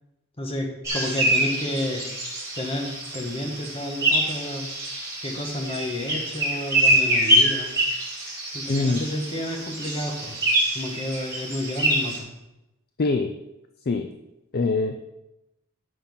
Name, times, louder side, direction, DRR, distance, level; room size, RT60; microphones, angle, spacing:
voice 1, 0.4-2.0 2.5-4.7 5.2-7.7 8.5-10.3 10.7-12.3, left 1 dB, 30° left, 2 dB, 1.5 m, -30 dB
sound 1, 0.8-12.2, right 1 dB, 15° right, 2.7 m, -25 dB
voice 2, 8.7-9.1 13.0-13.3 13.9-14.1 14.5-15.1, left 3 dB, 45° left, 7 dB, 0.5 m, -24 dB
9.5 x 5.7 x 5.5 m, 0.93 s
head